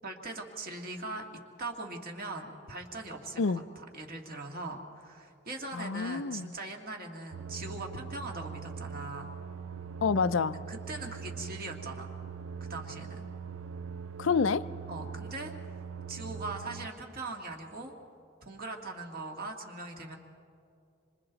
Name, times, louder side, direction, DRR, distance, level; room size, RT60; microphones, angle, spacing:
voice 1, 0.0-1.2 1.6-9.3 10.7-12.1 12.7-13.3 14.9-15.5 16.1-17.9 18.4-20.2, right 2 dB, 45° right, 2 dB, 2.1 m, -40 dB
voice 2, 5.7-6.5 10.0-10.6 14.2-14.6, left 5 dB, 70° left, 14 dB, 0.5 m, -28 dB
sound 1, 7.3-16.9, right 6 dB, 90° right, 0.6 m, -42 dB
26.5 x 26.0 x 4.0 m, 2.6 s
head